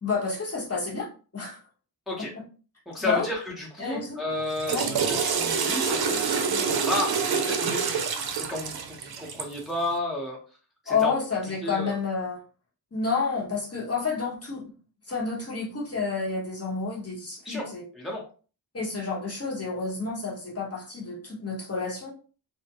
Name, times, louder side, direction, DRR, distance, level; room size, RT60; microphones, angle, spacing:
voice 1, 0.0-1.1 1.3-1.6 2.2-2.3 3.0-3.3 3.8-4.2 4.7-4.9 10.9-12.4 12.9-14.6 15.1-17.8 18.7-22.1, left 4 dB, 40° left, -5 dB, 1.0 m, -29 dB
voice 2, 2.9-8.0 8.5-8.7 9.0-10.4 10.9-11.1 11.6-11.9 17.4-17.7 17.9-18.2, left 1 dB, ahead, -3 dB, 0.8 m, -32 dB
Water / Toilet flush, 4.4-9.6, right 6 dB, 70° right, 0.5 m, -27 dB
2.4 x 2.1 x 2.8 m, 0.38 s
wide cardioid pair, 65°, 39 cm